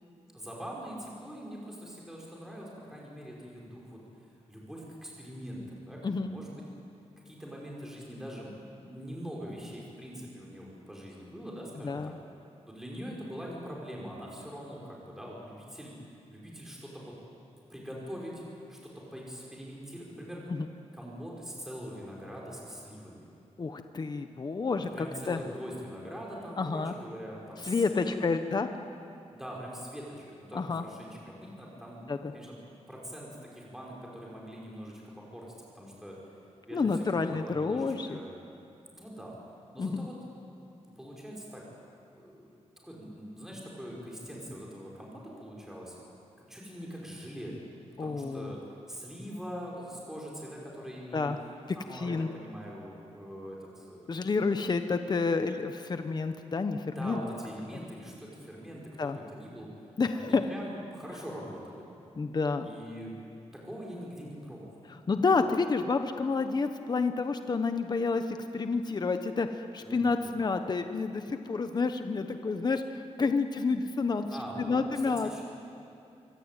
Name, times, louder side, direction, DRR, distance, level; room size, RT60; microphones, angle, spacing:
voice 1, 0.3-4.0 4.5-6.6 7.2-12.2 12.7-15.9 16.3-17.1 17.7-20.4 20.9-23.3 24.9-28.4 29.3-32.0 32.3-32.6 32.9-35.5 35.7-36.2 36.7-38.4 38.9-39.3 39.7-40.1 41.0-41.6 42.1-42.5 42.8-46.0 46.4-47.6 48.0-48.6 48.9-51.3 51.7-54.3 56.9-59.7 60.1-61.9 62.6-63.1 63.5-64.7 69.8-70.4 74.3-75.4, equal, 5° right, -4 dB, 5.5 m, -43 dB
voice 2, 6.0-6.3 11.8-12.1 20.6-20.7 23.6-25.4 26.6-26.9 27.7-28.7 30.5-30.8 32.1-32.3 36.7-38.2 39.8-40.1 48.0-48.5 51.1-51.4 51.9-52.3 54.1-57.2 59.0-59.2 60.0-60.4 62.2-62.7 65.1-74.3 74.6-75.4, left 4 dB, 35° left, 7 dB, 1.1 m, -29 dB
25.0 x 24.5 x 9.1 m, 2.7 s
wide cardioid pair, 130°, 12 cm